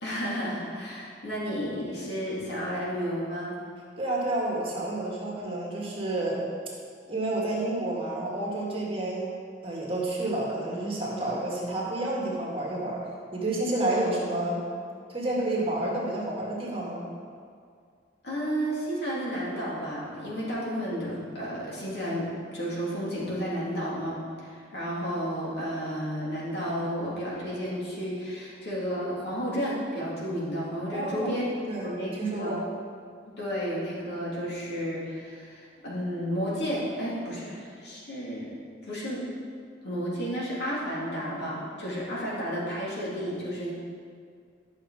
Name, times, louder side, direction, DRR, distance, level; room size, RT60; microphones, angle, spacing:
voice 1, 0.0-3.6 18.2-31.4 31.8-32.6 33.4-38.5 38.8-39.2 39.8-43.7, equal, 60° left, -7 dB, 2.9 m, -32 dB
voice 2, 4.0-6.4 7.1-9.3 9.6-13.0 13.3-14.6 15.1-17.1 30.9-32.6, right 2 dB, 30° right, -4 dB, 1.9 m, -30 dB
11.5 x 6.5 x 4.9 m, 2.2 s
head